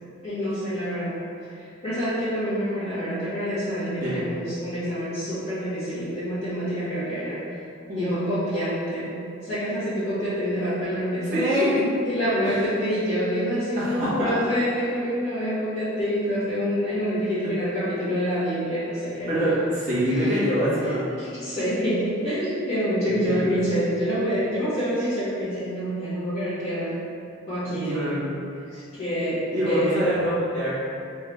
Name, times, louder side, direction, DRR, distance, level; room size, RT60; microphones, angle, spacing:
voice 1, 0.2-1.1 1.4-7.4 8.0-9.2 9.4-11.4 12.0-19.3 20.1-20.3 21.2-27.0 27.5-28.2 28.7-30.0, equal, 30° left, -19 dB, 1.5 m, -27 dB
voice 2, 11.3-11.8 12.4-12.6 13.8-14.3 17.4-17.5 19.3-21.0 23.2-23.6 27.6-28.3 29.5-30.8, equal, 40° right, -12 dB, 1.3 m, -25 dB
3.5 x 3.4 x 3.3 m, 2.5 s
head